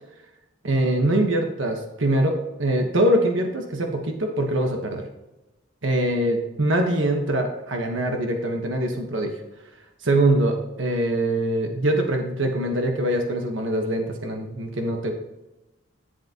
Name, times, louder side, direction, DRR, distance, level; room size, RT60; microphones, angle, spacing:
voice 1, 0.6-5.0 5.8-9.3 10.0-15.1, right 1 dB, 75° right, 3 dB, 1.3 m, -23 dB
11.5 x 7.9 x 3.0 m, 1.0 s
head